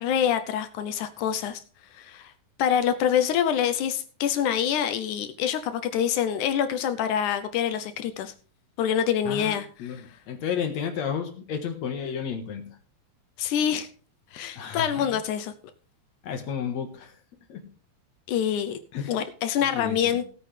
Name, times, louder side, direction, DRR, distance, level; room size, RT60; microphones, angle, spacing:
voice 1, 0.0-1.6 1.9-2.3 2.6-8.3 8.8-9.9 13.4-13.9 14.3-15.5 18.3-18.8 19.1-20.3, left 9 dB, 75° left, 9 dB, 1.8 m, -26 dB
voice 2, 9.3-10.0 10.3-12.8 14.6-15.1 16.2-17.1 17.5-17.7 18.9-19.1 19.7-20.2, left 7 dB, 55° left, 5 dB, 2.4 m, -32 dB
17.0 x 8.6 x 3.3 m, 0.42 s
omnidirectional pair, 4.2 m